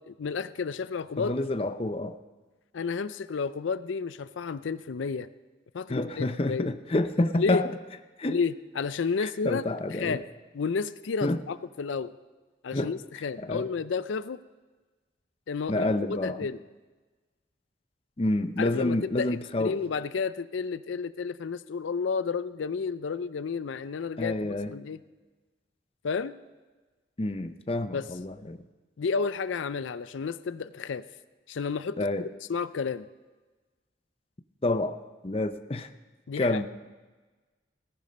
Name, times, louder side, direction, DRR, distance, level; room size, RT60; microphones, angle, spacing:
voice 1, 0.1-1.3 2.7-5.3 5.7-6.7 7.4-7.6 8.3-9.6 10.0-10.2 10.5-12.1 12.6-14.4 15.5-15.9 16.2-16.6 18.6-25.0 26.0-26.3 27.9-28.1 29.0-31.0 31.5-32.0 32.5-33.0 36.3-36.6, left 5 dB, 85° left, 14 dB, 0.5 m, -31 dB
voice 2, 1.2-2.2 5.9-7.7 8.2-8.4 9.2-10.2 11.2-11.4 12.7-13.7 15.7-16.5 18.2-19.8 24.2-24.7 27.2-28.6 32.0-32.3 34.6-35.0 35.2-35.9 36.4-36.7, left 2 dB, 30° left, 9 dB, 0.6 m, -28 dB
17.0 x 11.0 x 5.2 m, 1.3 s
head